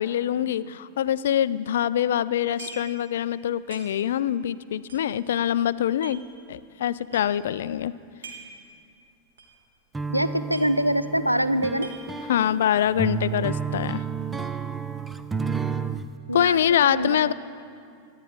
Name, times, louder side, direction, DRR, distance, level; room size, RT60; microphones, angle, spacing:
voice 1, 0.0-6.2 6.5-7.9 12.3-14.0 16.3-17.3, left 10 dB, 60° left, 17 dB, 0.3 m, -24 dB
sound 1, 2.6-3.0 3.3-3.4 3.7-4.2 4.8-6.2 6.7-6.8 7.0-7.5 8.0-8.6 8.9-9.0 9.4-9.6 9.9-10.0 10.2-11.1 11.4-12.4, right 5 dB, 65° right, 1.8 m, -44 dB
sound 2, 9.9-16.1, right 6 dB, 10° right, 0.5 m, -31 dB
voice 2, 10.1-11.9 16.3-17.3, equal, 90° right, 12 dB, 0.5 m, -25 dB
23.5 x 10.0 x 3.8 m, 2.4 s
figure-of-eight pair, 90°, 0 cm